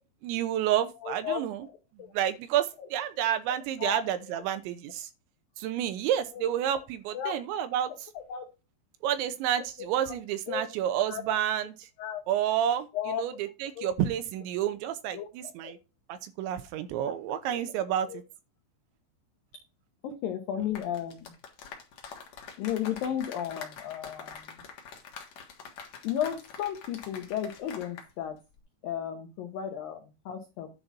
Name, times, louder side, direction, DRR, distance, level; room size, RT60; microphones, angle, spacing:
voice 1, 0.2-1.7 2.1-5.1 5.6-7.9 9.0-11.9 12.3-15.8 16.1-18.1, right 10 dB, 80° right, 3.0 m, -30 dB
voice 2, 1.0-2.1 2.8-2.9 3.8-4.0 6.3-6.4 7.1-7.4 8.1-8.5 9.8-10.2 10.5-10.7 11.1-11.2 12.0-12.2 12.9-13.2 13.8-13.9 15.1-15.7 17.0-17.7 18.1-18.2 20.0-21.3 22.6-24.6 26.0-28.4 28.8-30.7, left 10 dB, 90° left, 2.0 m, -34 dB
sound 1, 20.6-28.1 28.4-28.6, left 6 dB, 65° left, 1.8 m, -45 dB
10.5 x 4.2 x 5.9 m
omnidirectional pair, 5.6 m